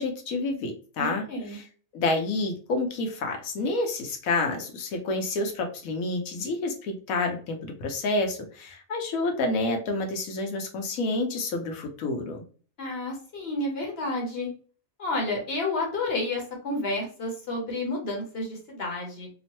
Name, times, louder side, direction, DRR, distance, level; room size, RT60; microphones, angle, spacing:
voice 1, 0.0-1.3 1.5-1.6 1.9-12.4, left 2 dB, 80° left, 4 dB, 1.1 m, -29 dB
voice 2, 1.0-1.6 12.8-14.5 15.0-19.3, left 2 dB, 50° left, 0 dB, 1.0 m, -30 dB
2.9 x 2.1 x 2.8 m, 0.41 s
omnidirectional pair, 1.4 m